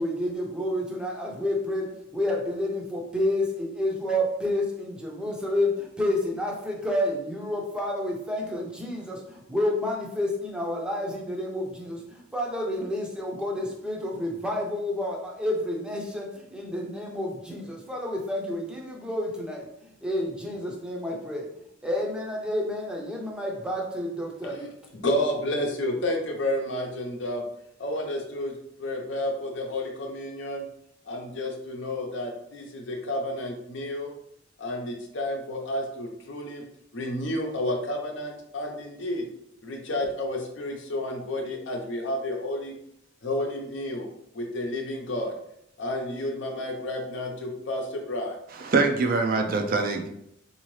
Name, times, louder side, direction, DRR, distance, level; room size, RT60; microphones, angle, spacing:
voice 1, 0.0-21.5 21.8-24.7, left 1 dB, 5° right, -1 dB, 0.6 m, -29 dB
voice 2, 24.9-27.4 27.8-30.6 31.1-34.1 34.6-36.6 36.9-39.3 39.6-42.7 43.2-44.1 44.3-45.3 45.8-48.4, left 1 dB, 70° left, 2 dB, 0.7 m, -31 dB
voice 3, 48.6-50.1, right 3 dB, 50° right, 4 dB, 0.4 m, -24 dB
3.8 x 2.8 x 3.1 m, 0.75 s
head